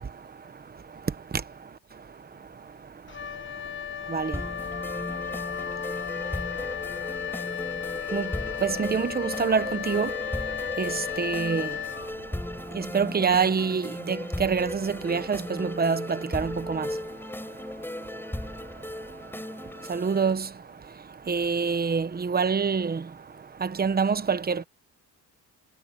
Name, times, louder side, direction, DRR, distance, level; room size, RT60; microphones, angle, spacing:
Wind instrument woodwind instrument, 3.1-12.6, left 9 dB, 30° left, 1.0 m, -35 dB
sound 1, 4.3-20.3, left 1 dB, 5° left, 4.4 m, -36 dB
voice 1, 8.6-10.1 10.8-11.7 12.7-16.9 19.9-20.5 21.3-23.0 23.6-24.6, right 5 dB, 25° right, 1.0 m, -26 dB
cardioid pair, 125°, 38 cm